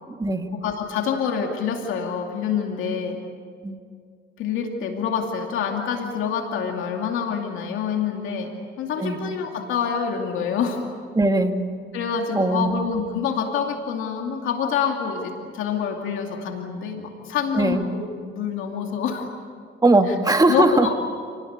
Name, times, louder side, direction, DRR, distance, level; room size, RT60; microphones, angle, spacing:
voice 1, 0.6-3.2 4.4-10.8 11.9-19.3 20.1-20.2 20.5-20.9, left 7 dB, 90° left, 2 dB, 2.6 m, -26 dB
voice 2, 11.1-11.5 12.3-12.7 17.5-17.8 19.8-20.9, right 2 dB, 20° right, 5 dB, 2.1 m, -19 dB
29.0 x 19.0 x 8.7 m, 2.1 s
cardioid pair, 90°, 20 cm